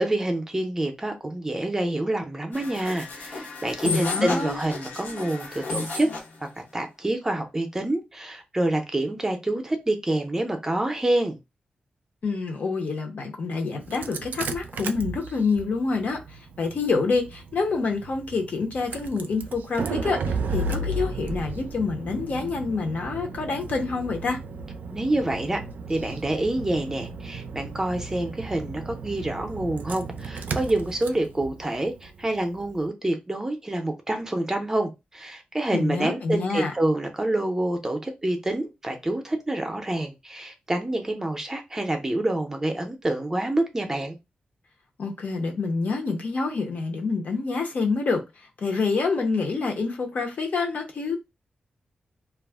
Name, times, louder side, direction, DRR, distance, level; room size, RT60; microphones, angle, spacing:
voice 1, 0.0-6.1 6.7-11.4 24.9-25.6 25.9-44.2, right 1 dB, 15° right, 0.5 m, -27 dB
sound 1, 2.5-6.3, left 3 dB, 85° left, 0.9 m, -32 dB
voice 2, 3.9-4.6 12.2-24.4 35.7-36.7 45.0-48.2 48.6-51.2, left 4 dB, 60° left, 0.7 m, -27 dB
Engine starting, 13.8-32.8, right 3 dB, 75° right, 0.3 m, -35 dB
2.3 x 2.0 x 3.4 m
wide cardioid pair, 130°, 3 cm